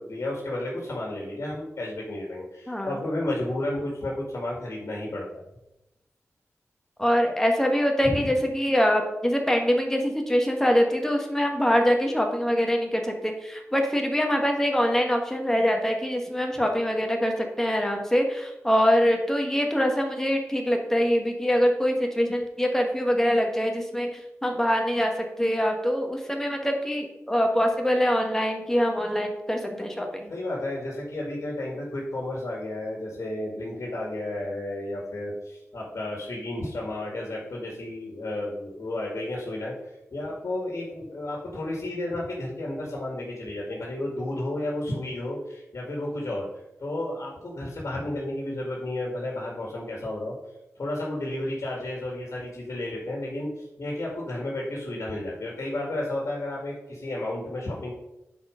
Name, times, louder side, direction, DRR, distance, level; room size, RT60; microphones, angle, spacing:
voice 1, 0.0-5.4 8.0-8.3 30.3-39.8 40.1-46.5 46.8-50.4 50.8-57.9, left 1 dB, 65° left, -2 dB, 2.2 m, -32 dB
voice 2, 2.7-3.0 7.0-24.1 24.4-25.1 25.4-30.3, equal, 10° left, 2 dB, 1.5 m, -24 dB
9.9 x 4.6 x 5.1 m, 0.91 s
wide cardioid pair, 105°, 5 cm